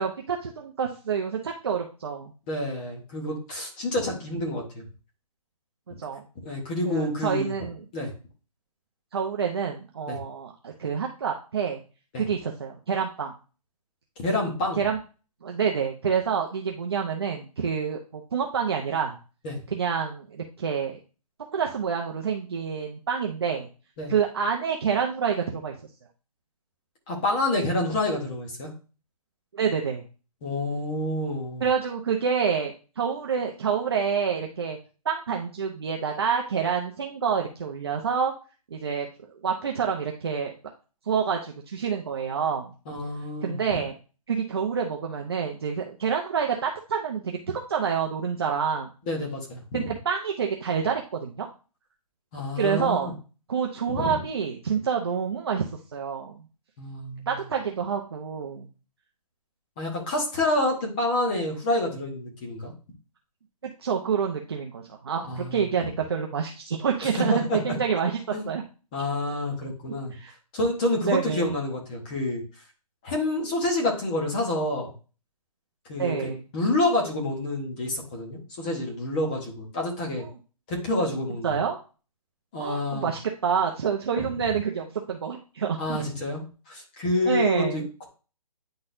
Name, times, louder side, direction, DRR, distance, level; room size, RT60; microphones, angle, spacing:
voice 1, 0.0-2.3 6.0-6.3 6.8-7.8 9.1-11.8 12.2-13.3 14.8-15.0 15.4-19.2 19.7-21.0 21.5-23.7 24.1-25.7 29.5-30.0 31.6-34.8 35.0-38.3 38.7-39.1 39.4-40.5 41.0-42.7 43.4-43.9 44.3-48.9 49.7-51.5 52.6-53.2 53.5-56.4 57.3-58.7 63.8-68.2 68.5-68.6 70.1-70.3 71.0-71.5 76.0-76.4 81.4-81.8 82.6-86.0 87.3-87.9, right 6 dB, 40° right, 2 dB, 0.6 m, -27 dB
voice 2, 2.5-4.8 6.4-7.5 7.9-8.1 10.1-10.2 12.1-12.2 14.2-14.8 19.4-19.6 24.0-24.1 27.1-28.7 30.4-31.6 42.9-43.8 49.1-49.8 52.3-53.1 53.9-54.2 56.8-57.3 59.8-62.7 65.3-65.6 67.2-67.6 68.3-68.5 68.9-70.1 70.5-72.4 73.0-74.9 75.9-80.2 80.7-81.6 82.5-83.1 84.2-84.3 85.8-88.1, left 1 dB, 15° left, -1 dB, 0.9 m, -28 dB
9.6 x 4.0 x 2.6 m, 0.35 s
hypercardioid pair, 175°, 20 cm